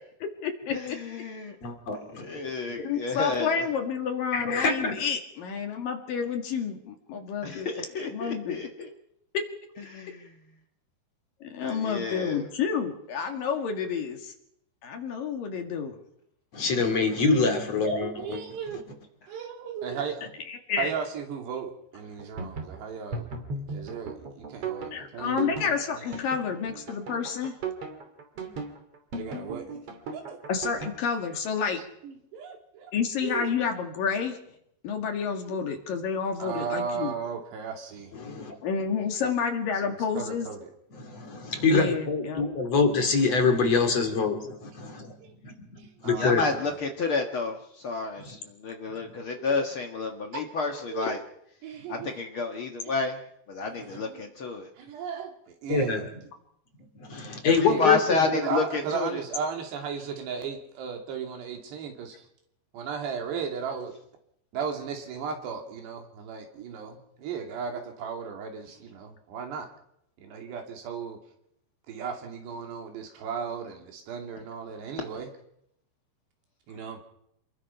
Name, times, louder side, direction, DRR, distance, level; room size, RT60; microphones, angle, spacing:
voice 1, 0.2-1.0 2.4-2.5 2.8-7.7 7.9-8.7 9.3-9.5 11.4-14.3 14.8-16.0 20.5-20.9 24.9-27.6 30.5-31.8 32.9-34.4 34.8-37.1 38.6-40.5 41.7-42.4, left 6 dB, 60° left, 4 dB, 3.5 m, -30 dB
voice 2, 0.7-1.5 1.9-3.6 7.4-8.9 9.9-10.3 11.6-12.4 46.1-51.2 51.9-53.2 53.5-54.7 57.2-59.2, left 4 dB, 90° left, 3 dB, 1.1 m, -30 dB
voice 3, 1.6-2.3 4.3-5.0 16.5-18.4 38.2-38.5 41.0-45.1 45.4-46.4 48.2-48.4 49.0-49.1 52.0-52.1 55.7-56.0 57.0-58.0, left 4 dB, 40° left, 5 dB, 3.2 m, -25 dB
voice 4, 18.0-19.0 19.3-20.2 20.8-25.7 28.4-28.6 29.1-29.9 30.1-30.4 32.0-32.9 33.2-33.5 35.5-35.6 36.4-38.1 39.8-40.7 45.2-45.3 45.8-46.8 49.4-49.7 50.3-50.4 50.7-51.2 51.6-52.2 52.9-53.0 53.7-54.3 54.8-56.0 57.6-57.8 58.3-62.3 62.7-63.9 64.5-69.7 70.2-71.2 71.9-75.3 76.7-77.0, right 6 dB, 75° right, 3 dB, 4.7 m, -36 dB
sound 1, 22.0-31.0, right 4 dB, 40° right, 3.2 m, -36 dB
27.0 x 21.0 x 5.8 m, 0.75 s
omnidirectional pair, 4.9 m